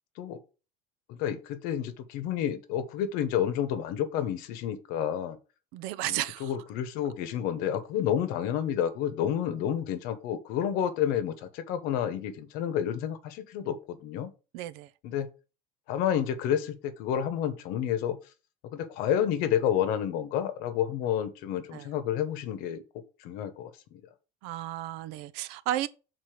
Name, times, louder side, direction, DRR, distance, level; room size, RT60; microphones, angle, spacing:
voice 1, 1.1-5.4 6.1-14.3 15.0-15.3 15.9-18.2 18.7-24.0, left 9 dB, 55° left, 1.0 m, -30 dB
voice 2, 5.7-6.5 14.5-14.9 21.7-21.9 24.4-25.9, right 14 dB, 60° right, 0.7 m, -33 dB
6.7 x 4.2 x 6.1 m
cardioid pair, 180°, 19 cm